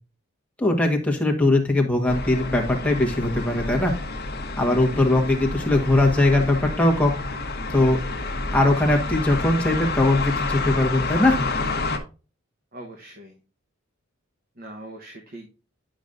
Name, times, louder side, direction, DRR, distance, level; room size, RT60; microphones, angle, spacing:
voice 1, 0.6-3.9 4.6-7.1 7.7-8.0 8.5-11.4, left 2 dB, 5° left, 0 dB, 1.3 m, -20 dB
sound 1, 2.1-12.0, left 3 dB, 50° left, 1.0 m, -29 dB
voice 2, 4.6-5.2 5.6-5.7 12.7-13.4 14.6-15.5, right 1 dB, 45° right, 1 dB, 1.1 m, -41 dB
10.5 x 5.1 x 2.6 m, 0.34 s
head